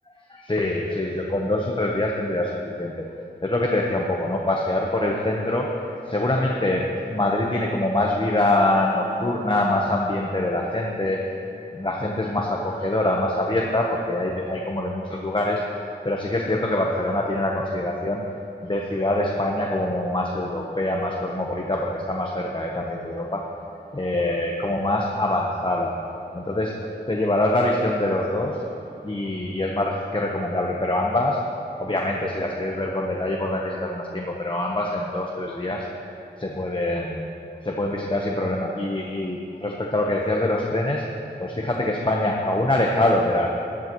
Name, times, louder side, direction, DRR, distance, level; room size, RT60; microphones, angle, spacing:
voice 1, 0.3-2.5 2.8-3.1 3.4-5.7 6.1-11.2 11.7-15.6 16.0-18.2 18.6-23.4 23.9-26.0 26.3-28.6 29.0-31.4 31.8-35.9 36.4-37.2 37.6-41.0 41.4-43.5, left 1 dB, 25° left, -1 dB, 1.0 m, -24 dB
16.0 x 11.0 x 3.1 m, 2.7 s
wide cardioid pair, 70°, 18 cm